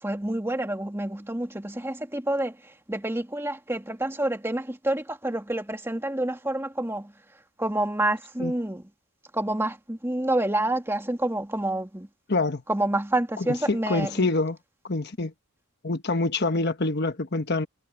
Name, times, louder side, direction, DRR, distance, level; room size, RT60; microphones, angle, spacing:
voice 1, 0.0-7.1 7.6-8.8 9.3-12.1 12.7-14.3, right 1 dB, 10° right, 2.0 m, -28 dB
voice 2, 12.3-12.6 13.7-14.6 14.8-15.3 15.8-17.7, left 2 dB, 50° left, 1.2 m, -26 dB
head